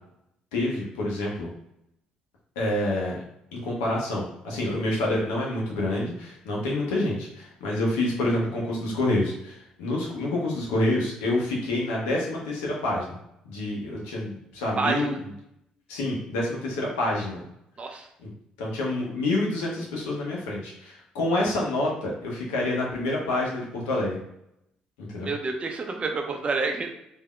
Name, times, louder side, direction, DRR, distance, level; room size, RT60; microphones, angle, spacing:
voice 1, 0.5-1.5 2.6-3.2 3.5-13.1 13.4-15.2 15.9-17.4 18.2-18.3 18.6-24.2 25.0-25.3, left 1 dB, 85° left, -2 dB, 0.9 m, -27 dB
voice 2, 14.8-15.2 17.8-18.1 25.2-26.9, right 4 dB, 40° right, 4 dB, 0.6 m, -28 dB
3.5 x 2.7 x 2.3 m, 0.79 s
hypercardioid pair, 55°, 3 cm